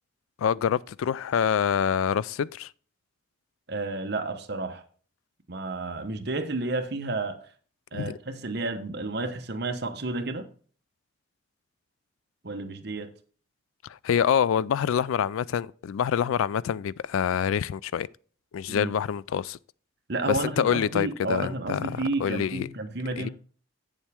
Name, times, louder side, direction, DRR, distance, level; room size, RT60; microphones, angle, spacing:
voice 1, 0.4-2.7 7.9-8.2 13.8-18.1 18.5-19.6 20.3-22.7 23.2-23.3, left 8 dB, 85° left, 0.3 m, -26 dB
voice 2, 3.7-4.8 5.5-7.4 7.9-10.5 12.4-13.1 18.7-18.9 20.1-23.3, right 2 dB, 55° right, 1.0 m, -31 dB
8.3 x 7.3 x 3.5 m
head